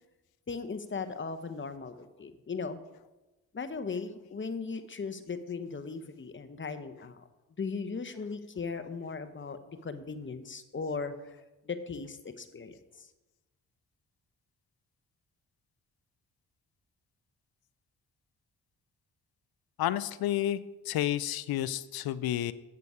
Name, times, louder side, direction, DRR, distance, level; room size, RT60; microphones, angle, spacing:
voice 1, 0.5-2.8 3.5-7.3 7.6-11.4 11.6-13.1, left 4 dB, 30° left, 10 dB, 0.9 m, -38 dB
voice 2, 19.8-20.6 20.9-22.5, left 12 dB, 70° left, 17 dB, 0.5 m, -30 dB
8.4 x 6.8 x 4.9 m, 1.1 s
supercardioid pair, 55°, 38 cm